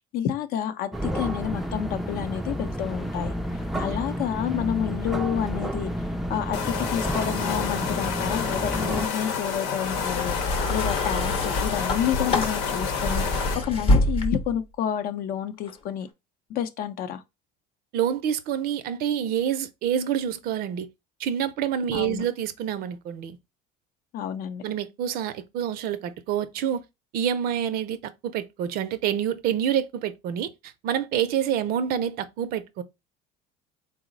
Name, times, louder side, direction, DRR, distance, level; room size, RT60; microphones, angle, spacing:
voice 1, 0.1-3.3 3.8-5.9 6.3-16.1 16.5-17.2 21.9-22.2 24.1-24.6, left 9 dB, 55° left, 0.5 m, -29 dB
sound 1, 0.9-9.1, equal, ahead, 0.3 m, -30 dB
sound 2, 6.5-13.5, left 5 dB, 85° left, 0.9 m, -29 dB
sound 3, 9.8-14.6 15.6-15.7, left 2 dB, 30° left, 0.8 m, -26 dB
voice 2, 17.9-20.9 21.2-23.4 24.6-26.8 27.1-32.8, right 9 dB, 60° right, 0.5 m, -27 dB
3.9 x 2.0 x 3.8 m
cardioid pair, 125°, 18 cm